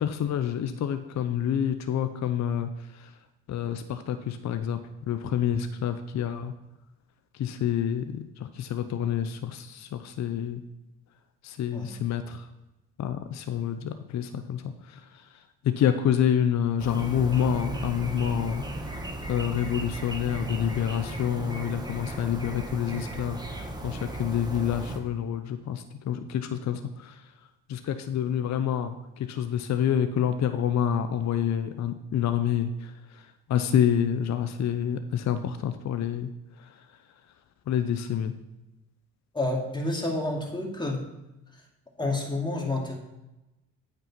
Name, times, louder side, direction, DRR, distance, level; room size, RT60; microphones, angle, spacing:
voice 1, 0.0-3.2 3.5-6.5 7.3-10.6 11.4-12.5 13.0-27.3 27.7-37.0 37.7-38.3, left 9 dB, 50° left, 9 dB, 0.7 m, -28 dB
sound 1, 16.8-25.0, right 1 dB, 10° right, 1.5 m, -36 dB
voice 2, 39.3-41.0 42.0-43.0, left 2 dB, 15° left, -1 dB, 2.6 m, -29 dB
9.0 x 5.6 x 5.7 m, 0.98 s
supercardioid pair, 65°, 36 cm